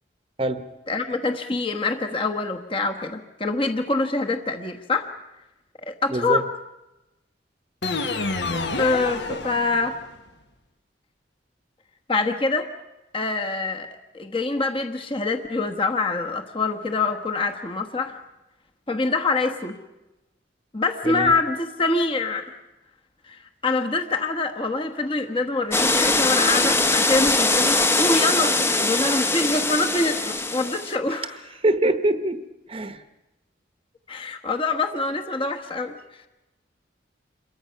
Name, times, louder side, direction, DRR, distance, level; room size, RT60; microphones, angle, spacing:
voice 1, 0.9-5.1 5.8-6.5 8.8-10.0 12.1-12.7 13.1-13.9 14.1-18.2 18.9-19.8 20.7-22.6 23.3-31.5 34.1-35.9, left 3 dB, 30° left, 4 dB, 1.2 m, -25 dB
voice 2, 6.1-6.4 9.3-9.4 21.1-21.3 31.6-32.4 32.7-33.0, right 1 dB, 30° right, 9 dB, 0.9 m, -23 dB
sound 1, 7.8-10.1, left 3 dB, 70° left, 1.5 m, -28 dB
sound 2, 25.7-31.0, left 2 dB, 15° left, 0.9 m, -21 dB
27.5 x 22.5 x 5.7 m, 1.0 s
head